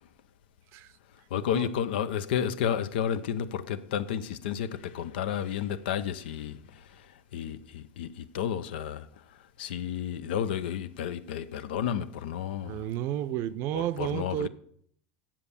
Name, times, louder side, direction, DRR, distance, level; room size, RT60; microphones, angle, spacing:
voice 1, 1.3-6.6 7.3-8.1 8.3-9.0 9.6-12.8 13.7-14.5, left 9 dB, 85° left, 0.6 m, -31 dB
voice 2, 12.6-14.5, right 12 dB, 55° right, 0.5 m, -32 dB
7.5 x 7.1 x 6.9 m
supercardioid pair, 125°, 5 cm